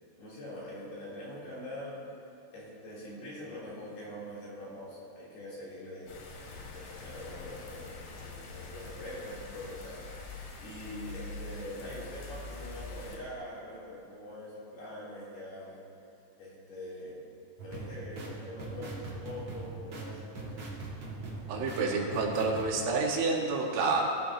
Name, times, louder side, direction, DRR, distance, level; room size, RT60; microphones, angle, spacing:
voice 1, 0.2-6.2 6.4-15.8 16.4-17.2 17.6-20.6, left 1 dB, 55° left, -8 dB, 5.3 m, -44 dB
sound 1, 6.1-13.2, left 3 dB, 85° left, 4.6 m, -44 dB
sound 2, 17.6-22.7, right 3 dB, 45° right, 2.3 m, -41 dB
voice 2, 21.5-24.1, right 3 dB, 85° right, -2 dB, 4.2 m, -29 dB
21.5 x 14.5 x 2.9 m, 2.5 s
omnidirectional pair, 5.6 m